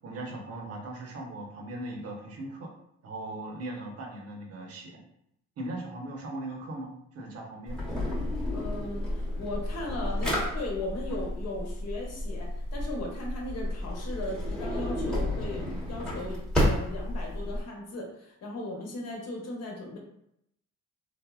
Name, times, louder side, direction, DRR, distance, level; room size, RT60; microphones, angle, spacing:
voice 1, 0.0-2.7 3.0-5.0 5.6-7.8, right 1 dB, 55° right, 0 dB, 0.8 m, -39 dB
Drawer open or close, 7.7-17.6, left 1 dB, ahead, 0.9 m, -31 dB
voice 2, 8.5-20.0, left 2 dB, 55° left, -1 dB, 0.9 m, -37 dB
3.4 x 2.0 x 2.3 m, 0.77 s
cardioid pair, 90°, 30 cm